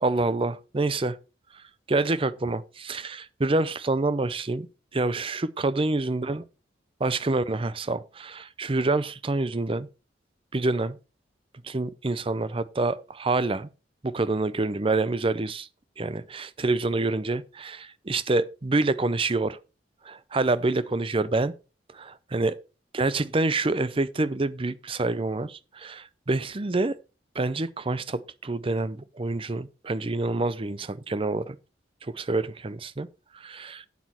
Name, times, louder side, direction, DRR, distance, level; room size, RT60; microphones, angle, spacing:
voice 1, 0.0-1.2 1.9-4.7 4.9-6.4 7.0-9.9 10.5-11.0 11.6-13.7 14.0-15.7 16.0-19.6 20.1-21.5 21.9-22.5 22.9-27.0 27.4-31.6 32.1-33.1 33.3-33.9, right 2 dB, 30° right, 0.6 m, -27 dB
8.5 x 8.2 x 4.4 m
head